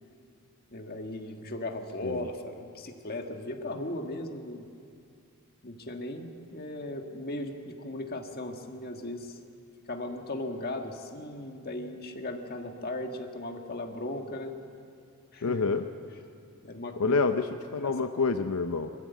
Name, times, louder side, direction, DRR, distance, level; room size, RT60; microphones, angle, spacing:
voice 1, 0.7-4.7 5.6-9.4 9.9-14.5 15.3-15.6 16.6-17.3 17.8-17.9, left 1 dB, 45° left, 4 dB, 1.6 m, -37 dB
voice 2, 15.4-15.8 17.0-17.4 17.7-18.9, left 4 dB, 85° left, 8 dB, 0.7 m, -27 dB
22.5 x 14.0 x 8.3 m, 2.4 s
head